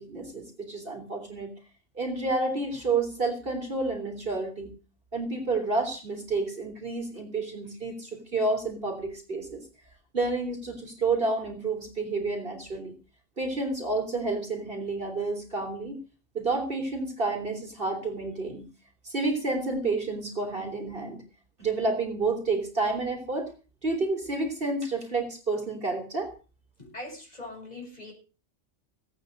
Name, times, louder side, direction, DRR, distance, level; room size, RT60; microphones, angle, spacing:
voice 1, 0.0-1.5 2.0-4.7 5.1-9.6 10.1-12.9 13.4-16.0 16.3-18.7 19.0-21.2 21.6-23.5 23.8-26.3, right 3 dB, 45° right, 3 dB, 3.7 m, -30 dB
voice 2, 26.8-28.1, left 2 dB, 35° left, 0 dB, 6.7 m, -41 dB
18.0 x 9.1 x 6.5 m, 0.35 s
omnidirectional pair, 1.2 m